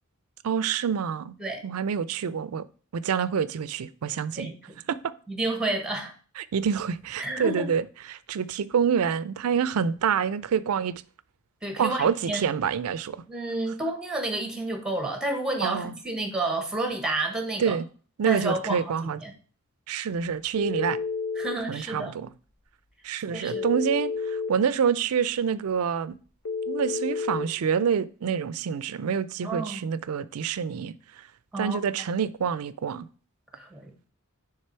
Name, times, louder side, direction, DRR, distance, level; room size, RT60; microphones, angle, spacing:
voice 1, 0.4-1.3 1.6-2.6 2.9-4.5 4.9-5.1 6.4-10.9 11.8-13.2 15.6-15.9 17.6-17.8 18.2-19.2 19.9-21.0 21.7-22.3 23.0-26.1 26.7-30.9 31.6-33.1, right 7 dB, 80° right, 0.4 m, -27 dB
voice 2, 5.3-6.1 7.2-7.7 11.6-12.4 13.3-17.8 18.3-18.9 19.2-19.3 21.4-22.1 23.3-23.6 29.4-29.8 31.5-31.8 33.5-33.9, right 2 dB, 5° right, 1.2 m, -30 dB
Telephone, 20.5-21.6 23.5-24.5 26.4-27.5, left 4 dB, 85° left, 1.1 m, -30 dB
6.7 x 3.5 x 4.4 m
head